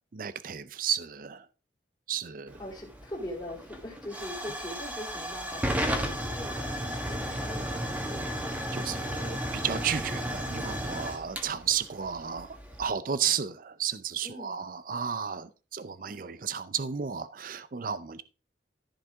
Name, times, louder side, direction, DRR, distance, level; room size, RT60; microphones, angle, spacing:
voice 1, 0.1-1.5 2.1-2.6 8.7-18.2, right 8 dB, 45° right, 0.5 m, -33 dB
Hiss / Fire / Tick, 2.5-12.9, equal, 10° right, 1.5 m, -34 dB
voice 2, 2.6-8.4 14.2-14.6, left 1 dB, 20° left, 3.0 m, -42 dB
14.0 x 5.3 x 3.6 m
head